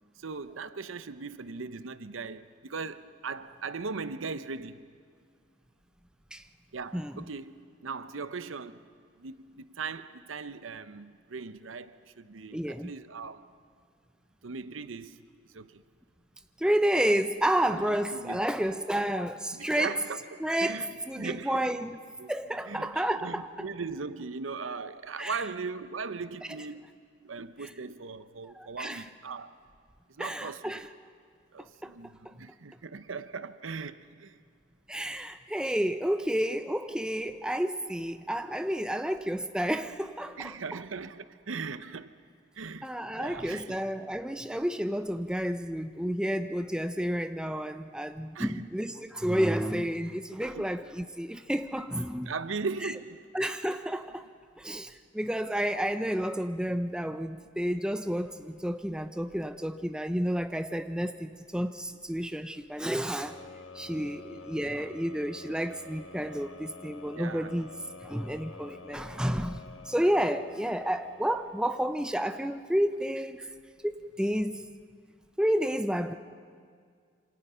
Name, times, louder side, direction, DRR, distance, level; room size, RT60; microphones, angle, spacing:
voice 1, 0.2-4.9 6.7-8.9 9.2-13.5 14.4-15.3 15.5-15.8 17.7-18.5 19.5-21.8 22.2-22.3 22.7-26.9 27.2-29.6 30.1-30.8 31.5-34.4 40.4-42.2 42.5-42.9 43.2-43.8 48.3-48.7 50.4-50.7 52.3-53.2 63.9-64.1 67.1-67.6, right 4 dB, 90° right, 0.8 m, -39 dB
voice 2, 6.9-7.2 12.5-12.9 16.6-20.0 20.4-22.0 22.3-23.5 25.2-25.4 28.6-29.0 30.2-30.9 31.6-31.9 32.3-32.4 34.9-40.5 42.8-52.3 52.8-52.9 53.3-54.3 54.6-63.4 63.7-67.8 68.0-73.5 73.8-74.7 75.4-76.1, equal, 5° right, 0.5 m, -30 dB
sound 1, 63.2-72.1, left 3 dB, 80° left, 1.4 m, -48 dB
27.0 x 26.0 x 5.6 m
head